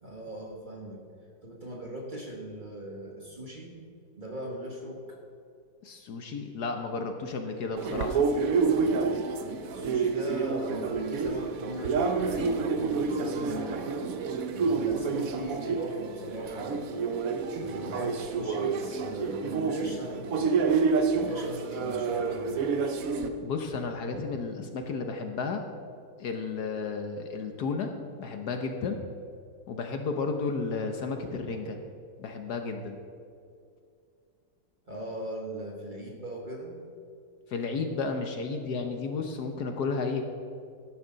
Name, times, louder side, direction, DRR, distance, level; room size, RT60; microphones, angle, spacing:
voice 1, 0.0-1.0 1.4-3.8 4.1-5.2 9.7-13.9 14.5-16.9 17.6-20.6 21.1-22.6 34.9-36.8, right 1 dB, 25° right, -1 dB, 1.5 m, -39 dB
voice 2, 5.8-8.3 23.4-25.6 26.2-27.9 28.2-29.0 29.7-31.8 32.2-33.0 37.5-40.2, left 4 dB, 65° left, 5 dB, 1.3 m, -32 dB
sound 1, 7.8-23.3, right 5 dB, 60° right, 1.0 m, -28 dB
13.0 x 12.0 x 3.9 m, 2.4 s
omnidirectional pair, 2.0 m